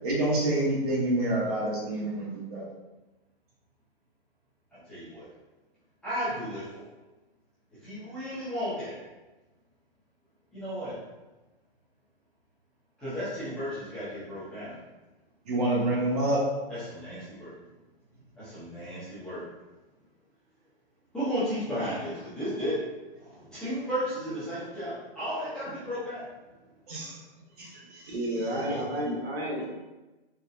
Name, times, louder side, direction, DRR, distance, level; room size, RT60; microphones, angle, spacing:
voice 1, 0.0-2.6 15.4-16.4 26.9-27.2 27.6-28.1 28.5-28.8, right 1 dB, 40° right, -5 dB, 1.0 m, -28 dB
voice 2, 4.7-5.3 6.0-6.8 7.8-8.9 10.5-11.0 13.0-14.8 16.8-17.5 18.4-19.4 21.1-22.8 23.2-26.2, equal, 5° left, -15 dB, 0.7 m, -34 dB
voice 3, 28.0-29.7, equal, 85° right, -2 dB, 1.1 m, -31 dB
4.0 x 2.2 x 2.6 m, 1.1 s
hypercardioid pair, 165°, 30 cm